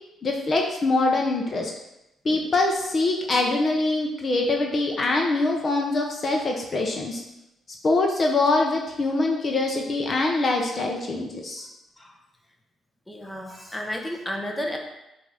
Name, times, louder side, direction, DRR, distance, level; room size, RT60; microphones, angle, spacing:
voice 1, 0.2-1.7 2.2-7.2 7.8-11.7, left 2 dB, 40° left, 1 dB, 0.8 m, -24 dB
voice 2, 13.1-14.8, equal, 10° left, 1 dB, 1.0 m, -32 dB
7.7 x 2.7 x 4.9 m, 0.91 s
cardioid pair, 90°, 0 cm